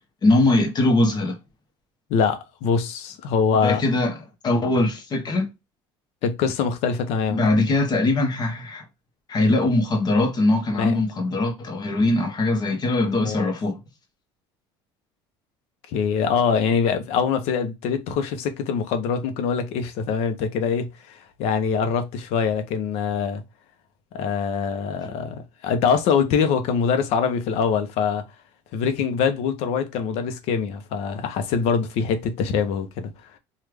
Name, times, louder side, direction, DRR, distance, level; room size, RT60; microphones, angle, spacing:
voice 1, 0.2-1.4 3.6-5.5 7.3-8.8 9.3-13.8, left 2 dB, 40° left, 1.0 m, -21 dB
voice 2, 2.1-3.8 6.2-7.5 10.8-10.9 13.2-13.5 15.9-23.4 24.1-28.2 28.7-33.1, left 6 dB, 70° left, 0.7 m, -24 dB
3.2 x 2.3 x 3.3 m
supercardioid pair, 85°, 11 cm